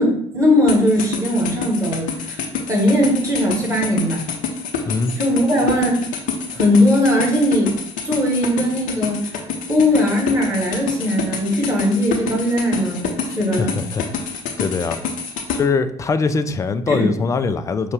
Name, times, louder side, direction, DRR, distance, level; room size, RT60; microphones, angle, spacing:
voice 1, 0.0-2.4 2.7-4.2 5.2-6.0 6.5-7.7 8.0-9.3 9.7-13.7 16.9-17.1, left 1 dB, 20° right, -2 dB, 1.6 m, -19 dB
sound 1, 0.7-15.6, left 6 dB, 55° left, 0.7 m, -27 dB
voice 2, 13.6-14.3 14.6-15.0 15.5-17.9, left 4 dB, 20° left, 10 dB, 0.3 m, -22 dB
5.2 x 2.3 x 3.5 m, 0.67 s
figure-of-eight pair, 50°, 17 cm